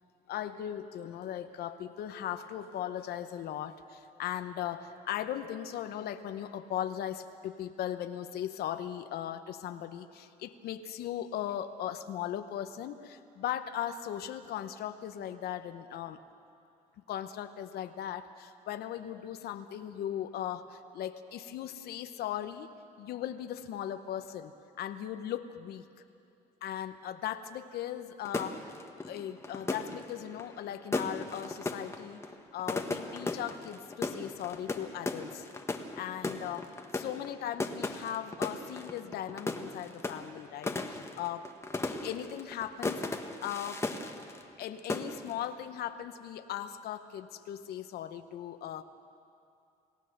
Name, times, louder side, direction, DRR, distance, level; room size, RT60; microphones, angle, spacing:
voice 1, 0.3-16.2 17.1-22.7 23.0-24.5 24.8-25.8 26.6-28.7 29.0-32.2 32.5-35.5 35.9-41.5 41.8-43.0 43.4-43.9 44.6-48.8, left 10 dB, 70° left, 9 dB, 0.9 m, -38 dB
sound 1, 28.2-44.6 44.9-45.4, left 3 dB, 15° left, 1.3 m, -37 dB
28.5 x 15.5 x 6.7 m, 2.6 s
cardioid pair, 110°, 17 cm